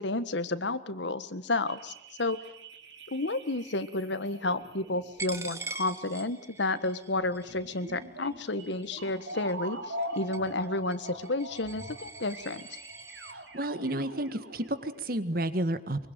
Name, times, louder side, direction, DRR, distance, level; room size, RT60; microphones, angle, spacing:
voice 1, 0.0-1.9 2.2-2.4 3.1-12.7, left 2 dB, 75° left, 13 dB, 1.6 m, -31 dB
sound 1, 1.7-15.0, right 1 dB, 90° right, 4.1 m, -43 dB
Coin (dropping), 5.2-13.3, right 3 dB, 15° right, 1.8 m, -44 dB
voice 2, 13.5-16.1, right 1 dB, 50° right, 12 dB, 1.8 m, -31 dB
24.5 x 23.5 x 9.2 m, 0.76 s
head